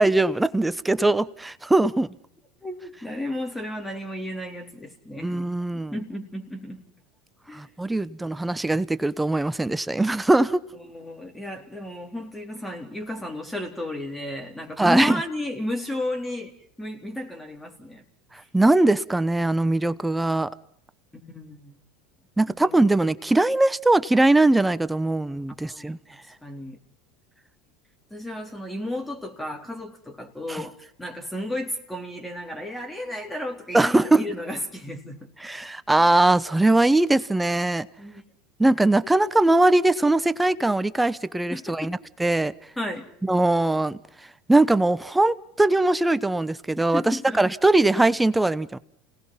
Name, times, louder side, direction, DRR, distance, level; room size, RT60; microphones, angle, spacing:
voice 1, 0.0-2.1 5.2-5.9 7.5-10.6 14.8-15.2 18.5-20.5 22.4-26.0 30.5-30.6 33.7-34.2 35.4-37.9 38.6-42.5 43.2-44.0 44.5-48.8, right 2 dB, 10° right, 0.9 m, -21 dB
voice 2, 2.6-5.3 5.7-6.8 7.5-7.6 10.7-16.5 16.8-18.0 18.3-18.5 21.1-21.8 22.6-22.8 25.6-25.9 26.4-26.8 28.1-35.3 38.0-38.2 41.5-42.0 42.8-43.1 46.8-47.5, left 1 dB, 10° left, 3.9 m, -33 dB
29.5 x 18.5 x 5.7 m
hypercardioid pair, 90°, 0 cm